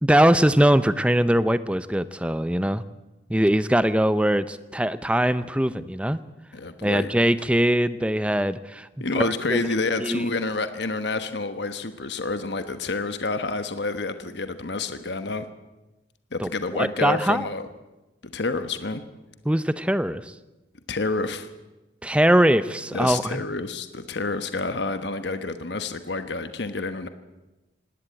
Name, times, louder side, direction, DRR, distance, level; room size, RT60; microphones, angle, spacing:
voice 1, 0.0-2.8 3.3-6.2 6.8-9.6 10.0-10.2 16.4-17.5 19.4-20.3 22.0-23.4, right 1 dB, 5° right, 14 dB, 0.6 m, -22 dB
voice 2, 6.5-7.1 9.0-15.5 16.3-17.7 18.2-19.0 20.9-21.5 22.9-27.1, left 3 dB, 70° left, 10 dB, 1.2 m, -28 dB
19.0 x 17.5 x 8.9 m, 1.1 s
head